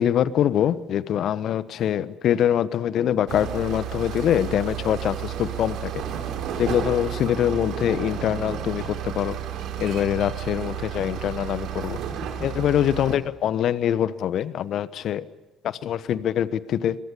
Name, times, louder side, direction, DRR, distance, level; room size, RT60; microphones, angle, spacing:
voice 1, 0.0-6.0 6.6-9.4 9.8-12.0 12.4-15.3 15.6-17.0, left 10 dB, 55° left, 17 dB, 1.2 m, -24 dB
sound 1, 3.3-13.2, right 9 dB, 60° right, 3.5 m, -32 dB
25.5 x 23.0 x 7.0 m, 1.0 s
figure-of-eight pair, 50°, 0 cm